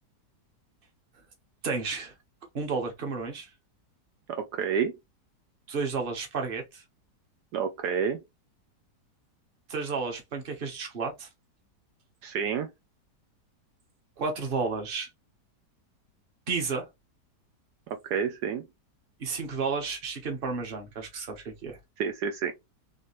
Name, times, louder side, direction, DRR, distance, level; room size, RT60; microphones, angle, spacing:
voice 1, 1.6-2.1 2.5-3.5 5.7-6.8 9.7-11.3 14.2-15.1 16.5-16.9 19.2-21.8, right 4 dB, 35° right, 1.2 m, -32 dB
voice 2, 4.3-4.9 7.5-8.2 12.2-12.7 17.9-18.6 22.0-22.5, right 7 dB, 75° right, 1.2 m, -29 dB
4.1 x 3.1 x 3.1 m
omnidirectional pair, 1.8 m